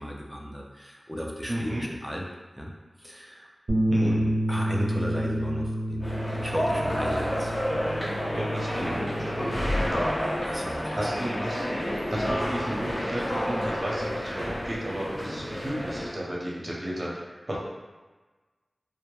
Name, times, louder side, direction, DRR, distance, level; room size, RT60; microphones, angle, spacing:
voice 1, 0.0-2.2 2.6-2.7 3.0-3.5 4.0-7.5 10.4-11.0, equal, ahead, -1 dB, 0.4 m, -35 dB
voice 2, 1.5-1.8 3.9-4.2 8.3-9.7 10.9-17.6, equal, 40° right, -5 dB, 0.7 m, -33 dB
Bass guitar, 3.7-9.9, right 1 dB, 75° right, 0.5 m, -29 dB
sound 1, 6.0-16.1, equal, 45° left, 0.9 m, -30 dB
2.1 x 2.0 x 3.1 m, 1.3 s
cardioid pair, 40°, 0 cm